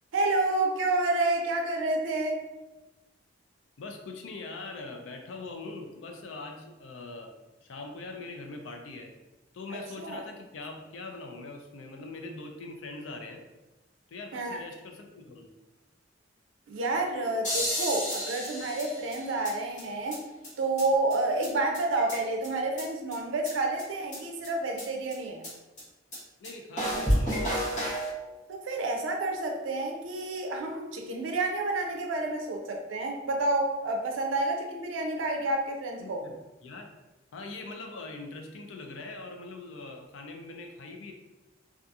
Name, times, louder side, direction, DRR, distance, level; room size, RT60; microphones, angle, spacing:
voice 1, 0.1-2.4 9.7-10.2 14.3-14.6 16.7-20.2 20.6-25.5 28.5-36.2, right 2 dB, 85° right, 3 dB, 0.4 m, -29 dB
voice 2, 3.8-9.1 9.5-13.4 14.1-15.5 26.4-27.4 36.0-36.3 36.6-36.9 37.3-41.1, left 3 dB, 85° left, 3 dB, 0.4 m, -42 dB
sound 1, 17.4-19.5 19.8-19.9 20.1-20.2 20.4-20.5 20.8-20.9 21.1-21.2 21.4-21.5 21.7-22.5 22.8-22.9 23.1-23.2 23.5-23.6 23.8-23.9 24.1-24.2 24.4-24.5 24.8-24.9 25.1-25.2 25.4-25.5 25.8-25.9 26.1-26.2 26.4-26.5 26.8-28.1, equal, 40° left, 1.0 m, -30 dB
2.7 x 2.4 x 2.3 m, 1.1 s
head